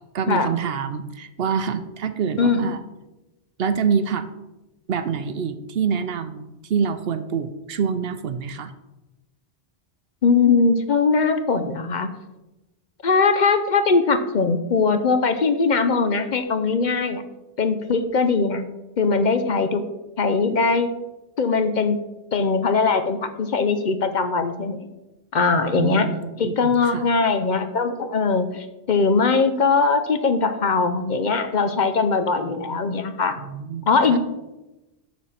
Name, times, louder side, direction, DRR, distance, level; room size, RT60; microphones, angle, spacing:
voice 1, 0.1-2.8 3.6-4.3 4.9-8.7 25.7-27.1 33.4-34.2, right 6 dB, 65° right, 10 dB, 0.8 m, -26 dB
voice 2, 2.4-2.8 10.2-12.1 13.0-17.2 17.6-18.6 19.0-19.8 20.2-20.9 21.4-22.0 22.3-24.9 25.3-26.1 26.4-33.4 33.9-34.2, left 4 dB, 50° left, 9 dB, 0.7 m, -20 dB
7.1 x 6.5 x 5.7 m, 1.0 s
omnidirectional pair, 1.1 m